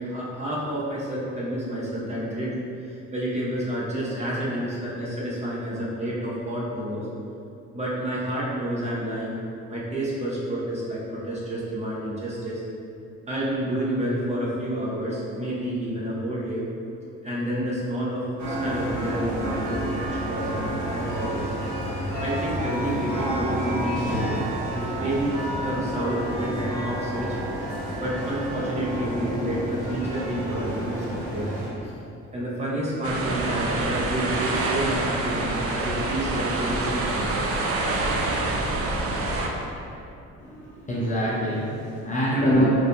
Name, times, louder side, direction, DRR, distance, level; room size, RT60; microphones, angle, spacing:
voice 1, 0.0-2.6 2.9-7.1 7.7-9.4 9.7-12.6 13.3-16.6 17.2-21.5 22.2-24.3 24.7-25.3 25.6-27.4 28.0-31.5 31.8-31.9 32.3-37.4 42.3-42.7, right 1 dB, 20° right, -7 dB, 0.8 m, -29 dB
sound 1, 18.4-31.7, right 1 dB, 70° right, 1.0 m, -30 dB
sound 2, 33.0-39.5, right 2 dB, 50° right, 0.4 m, -26 dB
voice 2, 40.4-42.7, equal, 25° left, -6 dB, 0.6 m, -25 dB
3.9 x 2.6 x 2.3 m, 2.7 s
cardioid pair, 90°, 30 cm